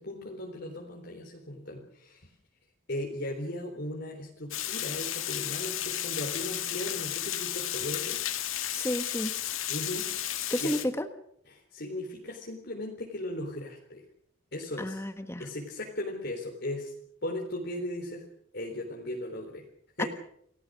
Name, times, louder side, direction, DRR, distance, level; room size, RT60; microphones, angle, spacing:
voice 1, 0.0-2.3 2.9-8.2 9.7-10.8 11.5-14.0 14.5-15.0 15.4-16.9 17.2-18.3 18.5-19.6 20.0-20.1, left 1 dB, 50° left, 0 dB, 3.9 m, -37 dB
Water, 4.5-10.9, left 12 dB, 75° left, 2.0 m, -33 dB
voice 2, 8.7-9.3 10.5-11.1 14.8-15.5 20.0-20.1, left 1 dB, 10° left, 8 dB, 1.3 m, -31 dB
29.0 x 19.0 x 6.5 m, 0.68 s
head